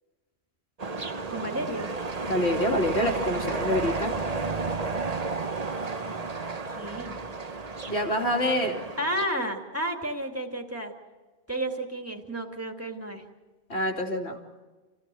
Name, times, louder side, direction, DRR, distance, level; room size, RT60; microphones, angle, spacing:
sound 1, 0.8-9.3, right 3 dB, 40° right, 1.1 m, -32 dB
voice 1, 1.3-1.9 6.7-7.2 9.0-10.9 11.5-13.2, right 1 dB, 15° right, 3 dB, 2.4 m, -32 dB
voice 2, 2.3-4.1 7.9-8.8 13.7-14.4, left 1 dB, 85° left, 1 dB, 3.3 m, -26 dB
29.0 x 16.5 x 7.7 m, 1.3 s
omnidirectional pair, 1.1 m